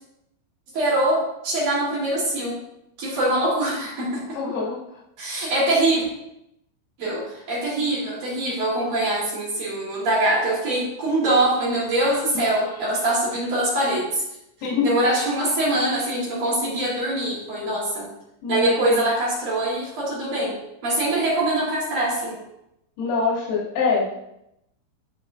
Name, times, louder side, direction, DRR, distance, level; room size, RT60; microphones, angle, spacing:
voice 1, 0.7-2.6 3.0-4.2 5.2-6.1 7.0-14.2 14.8-18.1 18.5-20.6 20.8-22.4, right 1 dB, 40° right, -6 dB, 4.3 m, -23 dB
voice 2, 4.4-4.8 12.3-12.4 14.6-14.9 18.4-19.1 23.0-24.2, left 5 dB, 85° left, -8 dB, 5.3 m, -24 dB
17.0 x 6.6 x 2.6 m, 0.83 s
omnidirectional pair, 5.9 m